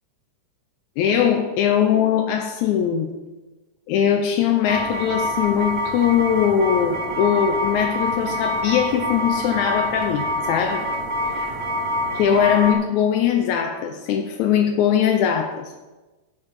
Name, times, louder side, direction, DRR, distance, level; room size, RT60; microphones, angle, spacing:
voice 1, 1.0-3.1 3.9-10.9 11.2-11.5 12.1-15.7, left 8 dB, 90° left, 4 dB, 2.1 m, -21 dB
sound 1, 4.6-12.7, left 1 dB, 25° right, 2.6 m, -26 dB
11.5 x 4.5 x 7.1 m, 1.2 s
omnidirectional pair, 3.4 m